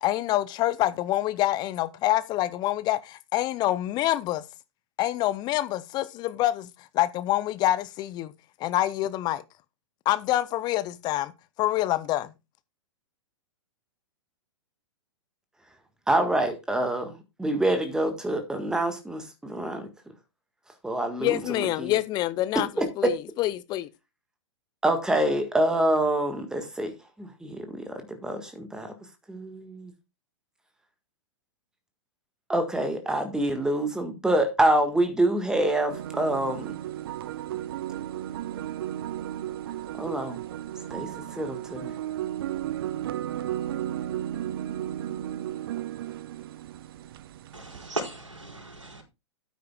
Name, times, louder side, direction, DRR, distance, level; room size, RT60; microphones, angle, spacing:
voice 1, 0.0-4.4 5.0-6.7 6.9-8.3 8.6-9.4 10.1-11.3 11.6-12.3 21.2-23.9, left 14 dB, 25° left, 0.6 m, -26 dB
voice 2, 16.1-19.9 20.8-22.0 22.8-23.1 24.8-26.9 27.2-28.9 29.3-29.9 32.5-36.7 40.0-40.4 40.9-41.1 41.4-41.9, right 1 dB, 5° right, 1.6 m, -26 dB
sound 1, 35.9-47.9, right 12 dB, 50° right, 0.7 m, -34 dB
voice 3, 47.5-49.0, right 2 dB, 85° right, 4.7 m, -36 dB
13.5 x 9.2 x 2.3 m
figure-of-eight pair, 105°, 16 cm